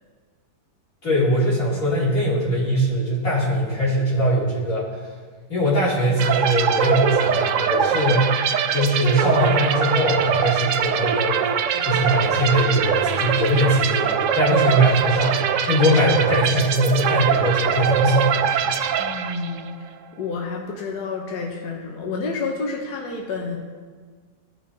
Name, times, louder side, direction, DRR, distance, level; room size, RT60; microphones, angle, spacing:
voice 1, 1.0-4.9 5.5-8.4 8.7-11.4 11.8-15.4 15.6-18.3 18.6-18.7, equal, 55° left, -8 dB, 3.3 m, -21 dB
sound 1, 6.2-19.7, right 8 dB, 70° right, 0.7 m, -22 dB
voice 2, 11.7-12.1 19.0-19.9 20.2-23.6, left 4 dB, 75° left, -1 dB, 1.5 m, -30 dB
16.0 x 6.0 x 2.8 m, 1.5 s
omnidirectional pair, 1.8 m